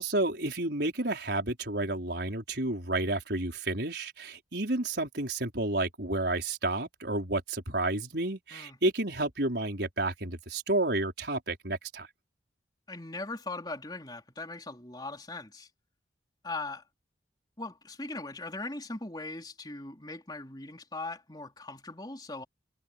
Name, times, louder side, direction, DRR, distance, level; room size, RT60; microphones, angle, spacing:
voice 1, 0.0-12.1, right 2 dB, 65° right, 4.8 m, -31 dB
voice 2, 12.9-15.7 16.4-16.8 17.6-22.4, left 2 dB, 25° left, 3.9 m, -40 dB
head